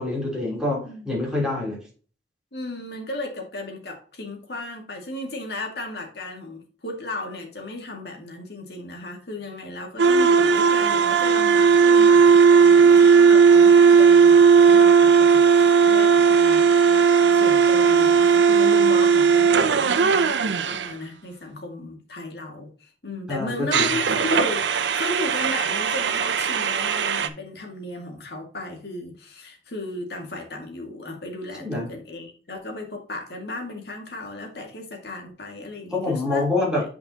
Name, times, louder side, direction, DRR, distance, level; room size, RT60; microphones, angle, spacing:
voice 1, 0.0-0.8 1.0-1.8 23.3-23.8 31.6-31.9 35.9-36.8, left 2 dB, 5° right, 3.4 m, -25 dB
voice 2, 0.6-1.1 2.5-36.5, left 2 dB, 65° left, 2.1 m, -35 dB
sound 1, 10.0-20.9 23.7-27.3, right 6 dB, 90° right, 0.6 m, -16 dB
8.6 x 5.3 x 2.9 m
head